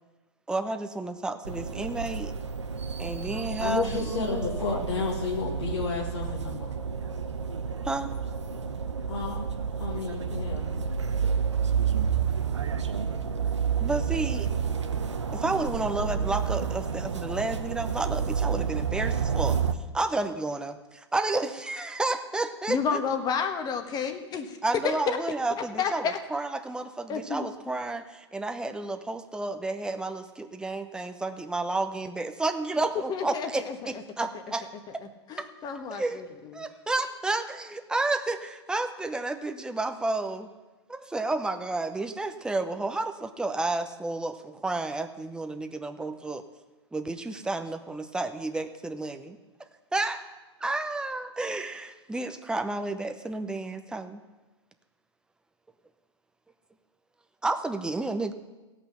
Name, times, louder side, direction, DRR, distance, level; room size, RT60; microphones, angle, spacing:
voice 1, 0.5-2.3 3.0-5.0 7.8-8.1 13.8-14.5 15.3-19.6 19.9-23.0 24.6-34.6 35.9-36.2 36.5-40.5 40.9-46.4 46.9-49.4 49.9-50.2 50.6-54.2 57.4-58.3, right 2 dB, 5° right, 7 dB, 0.8 m, -31 dB
sound 1, 1.4-19.7, right 6 dB, 85° right, 0.9 m, -30 dB
voice 2, 3.6-6.8 9.1-9.4 9.7-10.7, left 4 dB, 75° left, -3 dB, 2.0 m, -32 dB
voice 3, 22.7-24.6 24.8-25.2 25.8-26.2 27.1-27.5 33.1-33.9 35.0-36.6, left 6 dB, 25° left, 7 dB, 1.3 m, -31 dB
16.5 x 5.9 x 7.1 m, 1.2 s
hypercardioid pair, 110°, 15 cm